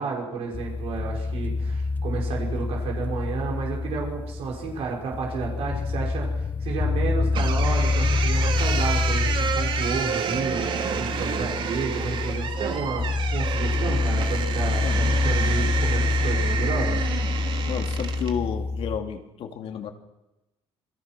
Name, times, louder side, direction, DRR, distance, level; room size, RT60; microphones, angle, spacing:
voice 1, 0.0-17.1, right 4 dB, 70° right, -1 dB, 5.6 m, -31 dB
sound 1, 0.5-19.0, left 3 dB, 15° left, 0.8 m, -26 dB
sound 2, 7.3-18.4, right 7 dB, 55° right, 2.3 m, -30 dB
voice 2, 17.7-19.9, left 8 dB, 70° left, 5 dB, 2.6 m, -31 dB
27.0 x 22.0 x 6.1 m, 0.99 s
cardioid pair, 155°, 10 cm